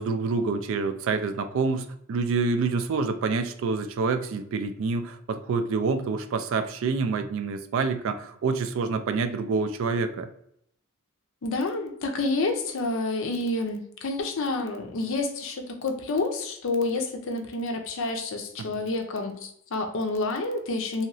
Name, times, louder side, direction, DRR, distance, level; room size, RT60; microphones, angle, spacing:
voice 1, 0.0-10.3 18.6-18.8, right 4 dB, 65° right, 10 dB, 0.3 m, -27 dB
voice 2, 11.4-21.1, left 2 dB, 65° left, 4 dB, 0.5 m, -29 dB
2.9 x 2.8 x 2.6 m, 0.72 s
head